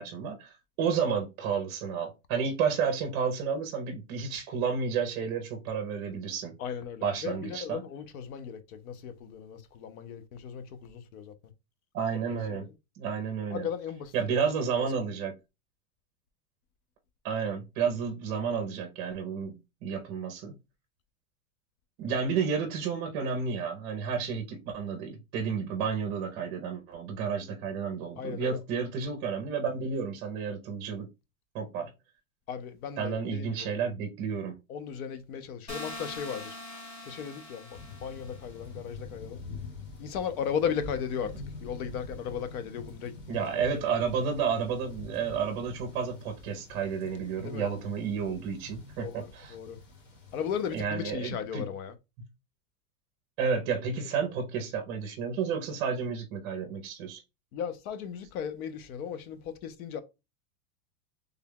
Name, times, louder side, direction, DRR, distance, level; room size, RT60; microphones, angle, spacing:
voice 1, 0.0-6.5 7.0-7.8 11.9-12.6 13.0-13.7 14.1-15.3 17.2-20.5 22.0-31.1 31.5-31.9 33.0-34.5 43.3-49.5 50.7-51.7 53.4-57.2, right 6 dB, 35° right, 0.6 m, -31 dB
voice 2, 6.6-11.3 12.5-12.7 13.5-14.4 14.7-14.9 28.2-28.6 32.5-33.7 34.7-36.6 37.0-39.4 40.0-41.3 41.6-43.4 47.4-47.7 49.0-49.2 49.5-49.8 50.3-51.9 53.9-54.3 57.5-60.0, left 7 dB, 75° left, 0.8 m, -36 dB
sound 1, 35.7-38.6, left 2 dB, 15° left, 0.4 m, -43 dB
sound 2, 37.7-50.8, left 3 dB, 50° left, 1.6 m, -46 dB
3.4 x 2.3 x 3.5 m
supercardioid pair, 165°, 43 cm